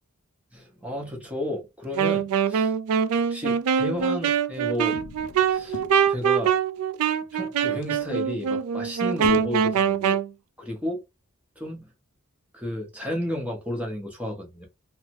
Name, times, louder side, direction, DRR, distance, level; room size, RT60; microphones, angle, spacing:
voice 1, 0.5-2.7 3.3-5.0 5.4-5.8 6.1-6.6 7.3-10.2 10.6-11.0 11.6-11.9 12.5-14.7, equal, 5° right, 0.9 m, -32 dB
Wind instrument woodwind instrument, 1.9-10.3, right 7 dB, 85° right, 0.3 m, -24 dB
sound 1, 4.9-6.4 6.9-7.0 7.2-7.3 7.8-9.8, left 6 dB, 75° left, 0.4 m, -42 dB
3.1 x 2.1 x 2.9 m
head